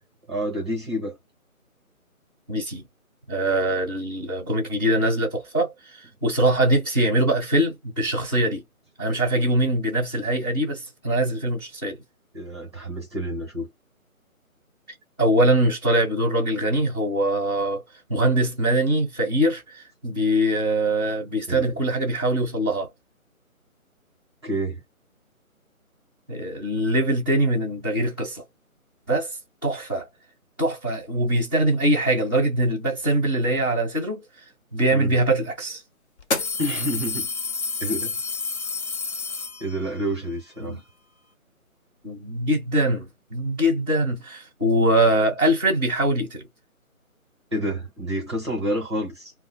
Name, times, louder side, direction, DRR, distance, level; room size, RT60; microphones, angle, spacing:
voice 1, 0.3-1.2 12.3-13.7 21.5-21.8 24.4-24.8 34.9-35.1 36.6-37.3 37.8-38.2 39.6-40.8 47.5-49.3, equal, 20° right, 0.8 m, -28 dB
voice 2, 2.5-2.8 3.3-8.6 9.0-12.0 15.2-17.8 18.1-22.9 26.3-28.4 29.1-29.3 29.6-30.1 30.6-34.2 34.7-35.8 40.6-40.8 42.0-46.5, right 1 dB, 15° left, 0.8 m, -23 dB
sound 1, 35.1-35.2 36.2-40.0, left 4 dB, 50° left, 0.8 m, -29 dB
2.5 x 2.4 x 4.1 m
figure-of-eight pair, 160°, 43 cm